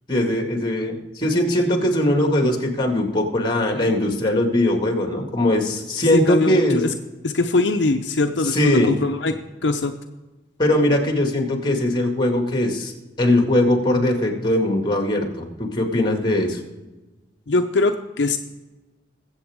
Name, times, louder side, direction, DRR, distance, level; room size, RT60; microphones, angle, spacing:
voice 1, 0.1-6.8 8.4-8.9 10.6-12.9 13.2-16.6, left 1 dB, 25° left, 3 dB, 2.0 m, -20 dB
voice 2, 6.1-6.9 7.2-9.3 9.6-9.9 17.5-18.4, left 3 dB, 70° left, 5 dB, 0.7 m, -21 dB
21.5 x 7.9 x 3.6 m, 1.1 s
head